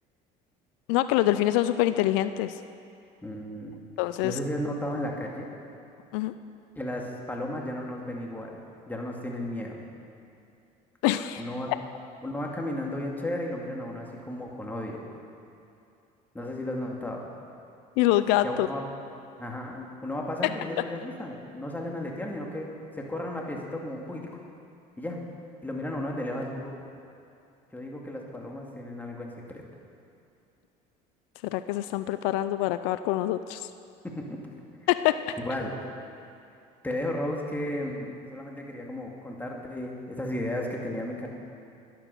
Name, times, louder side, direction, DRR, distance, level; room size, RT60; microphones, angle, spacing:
voice 1, 0.9-2.5 4.0-4.4 6.1-6.3 11.0-11.4 18.0-18.7 31.5-33.7 34.9-35.3, left 14 dB, 80° left, 12 dB, 0.4 m, -25 dB
voice 2, 3.2-3.8 4.2-5.5 6.8-8.6 8.9-9.8 11.4-11.7 12.2-15.0 16.3-17.2 18.4-18.8 19.4-22.7 22.9-24.3 25.0-25.2 25.6-26.9 27.7-29.6 34.0-34.4 35.4-35.8 36.8-41.3, left 1 dB, 10° left, -1 dB, 2.2 m, -34 dB
11.0 x 10.0 x 6.6 m, 2.6 s
supercardioid pair, 85°, 18 cm